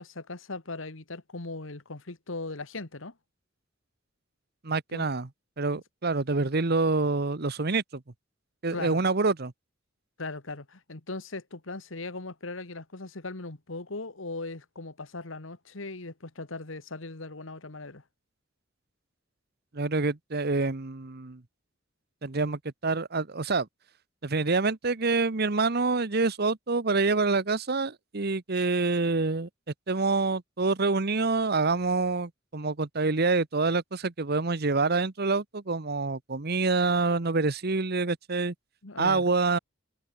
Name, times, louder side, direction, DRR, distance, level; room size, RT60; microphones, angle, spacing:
voice 1, 0.0-3.1 4.9-5.1 8.7-9.0 10.2-18.0 38.8-39.3, left 3 dB, 75° left, 1.8 m, -39 dB
voice 2, 4.6-5.3 5.6-8.0 8.6-9.5 19.7-21.4 22.2-23.7 24.2-29.5 29.9-38.5 39.0-39.6, right 3 dB, 50° right, 1.1 m, -26 dB
head